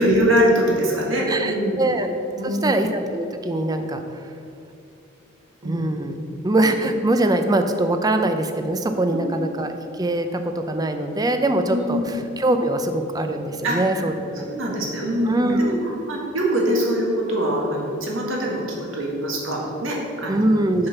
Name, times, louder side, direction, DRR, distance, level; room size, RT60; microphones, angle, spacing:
voice 1, 0.0-1.9 2.4-2.8 5.6-5.8 9.1-9.4 11.7-12.1 13.6-14.1 14.5-18.6 18.9-20.5, equal, 80° right, -2 dB, 1.7 m, -23 dB
voice 2, 1.3-2.1 2.4-4.0 5.6-6.1 6.4-14.4 15.3-15.9 20.3-20.9, right 1 dB, 20° right, 7 dB, 0.5 m, -22 dB
6.4 x 5.7 x 5.9 m, 2.7 s
head